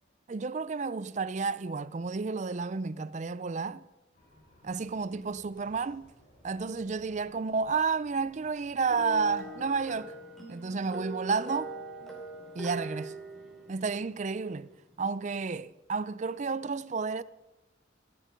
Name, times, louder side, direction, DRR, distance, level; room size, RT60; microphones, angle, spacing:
voice 1, 0.3-3.8 4.6-6.1 6.4-10.2 10.5-11.8 12.5-13.1 13.7-14.7 15.0-17.2, right 4 dB, 40° right, 0.4 m, -31 dB
sound 1, 4.1-9.9, left 1 dB, 50° left, 5.9 m, -60 dB
sound 2, 8.9-14.3, right 1 dB, ahead, 3.0 m, -41 dB
16.0 x 10.5 x 5.2 m
head